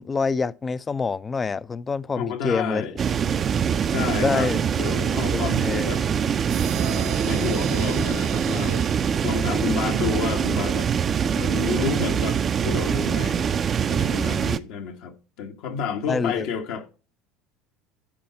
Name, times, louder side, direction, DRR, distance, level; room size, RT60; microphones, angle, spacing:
voice 1, 0.0-2.9 4.2-4.6 5.3-5.9 16.1-16.5, left 4 dB, 25° left, 0.4 m, -26 dB
voice 2, 2.2-2.9 3.9-6.0 6.7-10.9 11.3-13.5 13.9-16.9, left 6 dB, 70° left, 1.2 m, -30 dB
sound 1, 3.0-14.6, right 7 dB, 35° right, 0.5 m, -24 dB
sound 2, 6.5-10.1, right 10 dB, 65° right, 0.8 m, -36 dB
10.5 x 4.7 x 4.3 m
hypercardioid pair, 85°, 0 cm